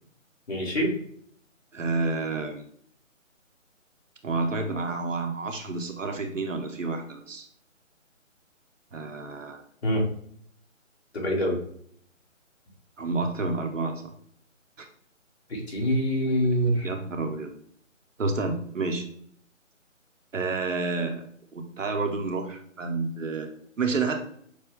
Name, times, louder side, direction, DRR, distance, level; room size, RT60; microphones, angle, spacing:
voice 1, 0.5-0.9 9.8-10.0 11.1-11.6 15.5-16.9, equal, 50° left, -2 dB, 1.9 m, -25 dB
voice 2, 1.7-2.7 4.2-7.5 8.9-9.6 13.0-14.1 16.8-17.5 18.2-19.0 20.3-21.2 21.5-23.5 23.8-24.2, right 3 dB, 70° right, 4 dB, 1.0 m, -29 dB
6.5 x 2.3 x 3.6 m, 0.62 s
figure-of-eight pair, 155°, 40 cm